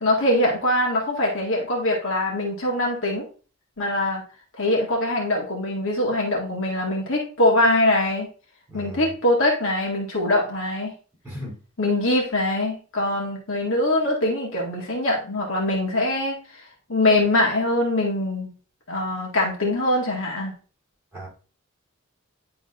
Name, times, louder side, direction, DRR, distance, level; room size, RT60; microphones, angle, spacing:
voice 1, 0.0-3.3 3.8-4.2 4.6-8.3 8.7-11.0 11.8-16.6 16.9-18.5 18.9-20.6, left 1 dB, 65° left, -1 dB, 1.9 m, -23 dB
voice 2, 8.7-9.1 11.2-11.6 21.1-21.3, equal, 10° right, -6 dB, 3.4 m, -36 dB
10.5 x 3.8 x 2.5 m, 0.37 s
head